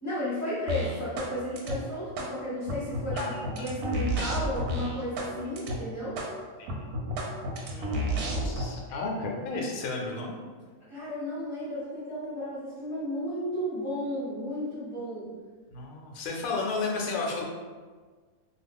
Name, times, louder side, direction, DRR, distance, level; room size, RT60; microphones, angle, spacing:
voice 1, 0.0-6.2 10.8-15.3, equal, 15° left, -14 dB, 0.8 m, -33 dB
sound 1, 0.7-1.3 1.6-2.3 2.7-5.3 5.6-5.8 6.2-6.3 6.7-8.7, equal, 90° right, 1.1 m, -31 dB
voice 2, 3.1-3.7 4.3-4.4 6.6-6.7 7.7-10.4 15.7-17.4, left 3 dB, 80° left, -1 dB, 1.0 m, -33 dB
2.5 x 2.4 x 3.5 m, 1.5 s
omnidirectional pair, 1.5 m